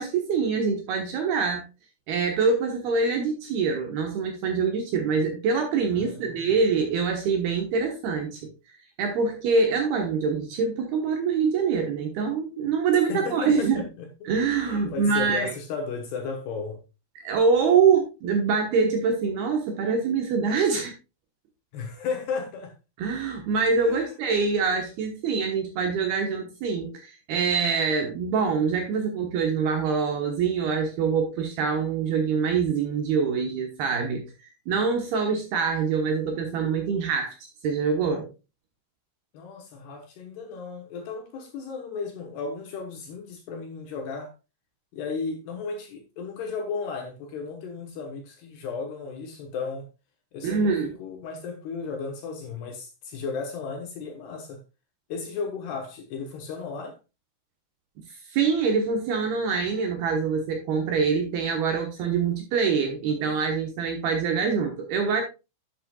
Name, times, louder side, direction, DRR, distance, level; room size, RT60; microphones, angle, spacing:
voice 1, 0.0-1.6 2.1-8.5 9.0-13.8 14.3-15.5 17.2-20.9 23.0-34.2 34.7-37.3 37.6-38.3 50.4-50.9 58.3-65.2, right 5 dB, 70° right, 2.6 m, -25 dB
voice 2, 5.9-6.5 12.9-14.3 14.6-16.8 21.7-22.7 23.8-24.1 39.3-44.3 44.9-49.9 50.3-54.6 55.1-57.0, left 5 dB, 70° left, 2.7 m, -34 dB
11.5 x 7.8 x 2.3 m
omnidirectional pair, 5.7 m